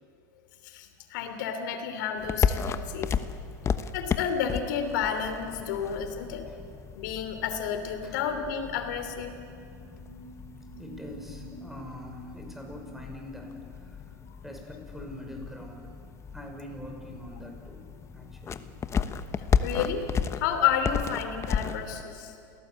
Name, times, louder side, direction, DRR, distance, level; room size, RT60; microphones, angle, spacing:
voice 1, 0.6-3.1 3.9-6.5 6.9-9.4 19.6-20.1 20.3-22.4, left 8 dB, 70° left, 8 dB, 3.2 m, -31 dB
sound 1, 2.2-22.0, left 6 dB, 25° left, 1.1 m, -34 dB
sound 2, 8.6-14.3, right 4 dB, 30° right, 2.5 m, -51 dB
voice 2, 10.8-14.1 14.4-15.9 16.3-18.8, left 1 dB, ahead, 2 dB, 5.7 m, -44 dB
28.5 x 17.5 x 8.4 m, 2.5 s
hypercardioid pair, 105°, 10 cm